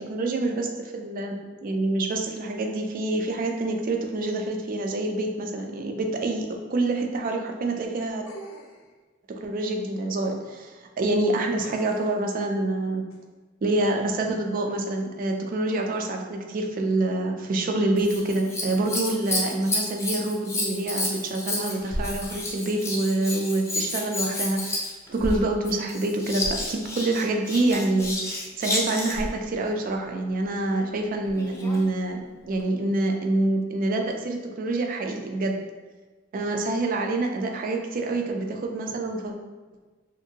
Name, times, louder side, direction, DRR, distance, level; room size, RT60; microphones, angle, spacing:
voice 1, 0.0-1.3 1.6-8.3 9.3-13.0 13.6-24.8 25.1-35.6 36.3-39.3, right 2 dB, 45° right, 2 dB, 0.4 m, -26 dB
sound 1, 8.3-8.9 11.6-12.2 13.1-13.2, equal, 70° left, 0.4 m, -43 dB
Scissors, 18.0-29.3 31.3-31.9 32.6-32.7, left 1 dB, 15° left, 0.5 m, -30 dB
2.7 x 2.5 x 2.7 m, 1.3 s
head